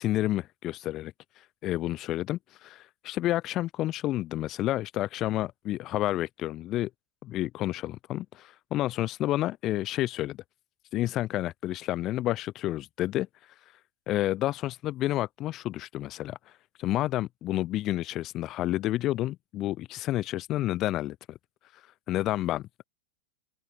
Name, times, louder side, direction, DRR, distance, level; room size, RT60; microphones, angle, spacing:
voice 1, 0.0-6.9 7.2-10.4 10.9-13.3 14.1-16.4 16.8-21.4 22.1-22.8, left 15 dB, 35° left, 0.5 m, -30 dB
open air
figure-of-eight pair, 90°, 0 cm